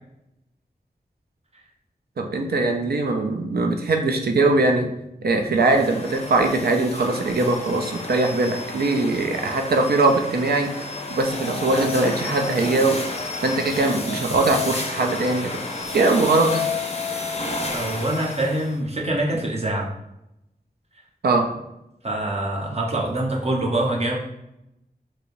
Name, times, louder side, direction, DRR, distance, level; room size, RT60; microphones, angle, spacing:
voice 1, 2.2-4.9 5.2-10.7 11.1-13.0 13.4-15.6 15.9-16.7 21.2-21.5, right 2 dB, 80° right, 3 dB, 0.5 m, -21 dB
sound 1, 5.6-18.8, left 3 dB, 40° left, 0.5 m, -31 dB
voice 2, 17.7-19.9 22.0-24.2, right 1 dB, 40° right, -1 dB, 0.7 m, -25 dB
3.1 x 2.8 x 2.5 m, 0.86 s
wide cardioid pair, 65°, 16 cm